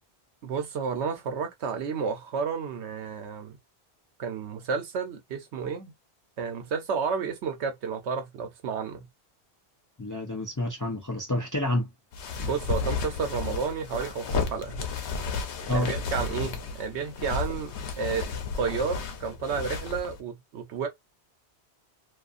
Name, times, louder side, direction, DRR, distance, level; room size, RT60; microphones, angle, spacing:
voice 1, 0.4-3.5 4.2-5.9 6.4-9.1 12.4-14.8 15.7-18.3 18.6-20.9, right 5 dB, 90° right, 1.0 m, -31 dB
voice 2, 10.0-11.9 15.7-15.9, left 1 dB, 30° left, 0.3 m, -29 dB
sound 1, 12.1-20.2, left 5 dB, 90° left, 0.9 m, -33 dB
2.6 x 2.4 x 2.5 m
omnidirectional pair, 1.1 m